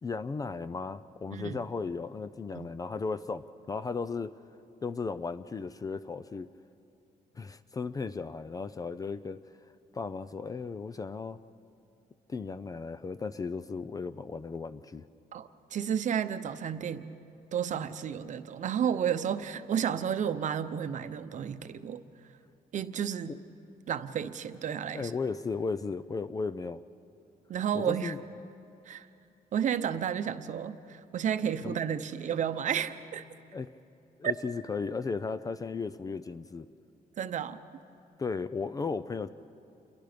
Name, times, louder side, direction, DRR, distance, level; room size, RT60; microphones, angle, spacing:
voice 1, 0.0-4.3 4.8-6.5 7.4-9.4 9.9-11.4 12.3-15.0 23.3-23.4 24.9-26.8 27.7-28.2 31.6-31.8 33.5-33.7 34.2-36.7 38.2-39.3, left 4 dB, 20° left, 13 dB, 0.4 m, -35 dB
voice 2, 1.3-1.6 2.5-2.7 15.3-17.1 17.5-22.0 22.7-23.4 23.9-25.1 27.5-28.1 28.9-29.1 29.5-33.3 34.2-34.3 37.2-37.6, right 8 dB, 50° right, 10 dB, 0.8 m, -32 dB
28.5 x 22.5 x 5.1 m, 2.7 s
cardioid pair, 155°, 16 cm